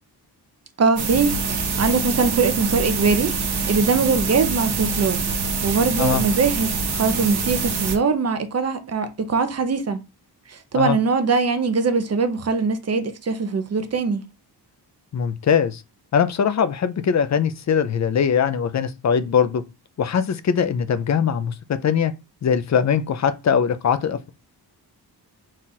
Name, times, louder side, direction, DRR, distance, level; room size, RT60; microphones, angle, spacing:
voice 1, 0.8-3.3 3.7-5.2 5.6-10.0 10.5-14.2, right 4 dB, 40° right, 0.7 m, -22 dB
sound 1, 1.0-8.0, right 4 dB, 65° right, 1.1 m, -25 dB
voice 2, 15.1-15.8 16.1-19.6 20.0-22.1 22.4-24.3, left 7 dB, 45° left, 0.4 m, -21 dB
4.2 x 2.4 x 4.0 m
wide cardioid pair, 130°, 41 cm